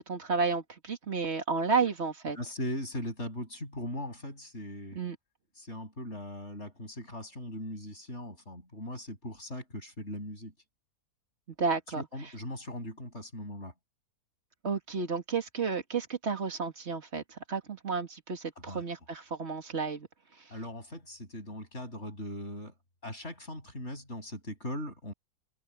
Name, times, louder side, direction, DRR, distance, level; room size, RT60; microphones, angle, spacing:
voice 1, 0.0-2.4 4.9-5.2 11.6-12.0 14.6-20.1 20.4-20.5, right 5 dB, 45° right, 2.5 m, -32 dB
voice 2, 2.3-5.0 5.6-10.5 12.0-13.7 18.7-18.8 20.5-22.7 23.0-25.1, left 1 dB, 45° left, 7.3 m, -39 dB
omnidirectional pair, 1.7 m